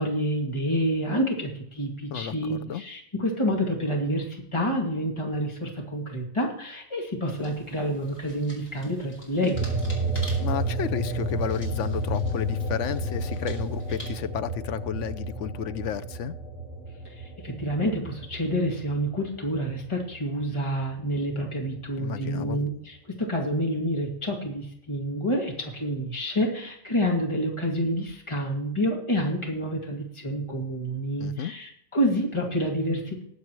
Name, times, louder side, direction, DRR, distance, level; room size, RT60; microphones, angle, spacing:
voice 1, 0.0-9.7 17.0-33.2, equal, 25° left, -1 dB, 2.4 m, -28 dB
voice 2, 2.1-2.8 10.4-16.3 22.0-22.6 31.2-31.5, left 9 dB, 90° left, 12 dB, 1.0 m, -32 dB
sound 1, 7.3-14.3, equal, 55° left, 4.0 m, -47 dB
sound 2, 9.5-20.4 20.8-22.3, right 1 dB, 45° right, 1.8 m, -31 dB
20.0 x 8.0 x 3.1 m, 0.69 s
omnidirectional pair, 1.2 m